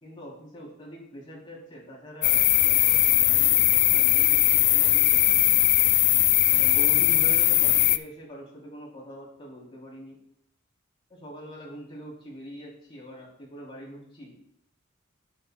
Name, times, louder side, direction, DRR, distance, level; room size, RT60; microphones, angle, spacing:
voice 1, 0.0-5.6 6.5-10.2 11.1-14.3, right 1 dB, 25° left, -5 dB, 3.0 m, -43 dB
sound 1, 2.2-8.0, left 15 dB, 55° left, 0.4 m, -20 dB
12.5 x 7.2 x 2.2 m, 0.69 s
head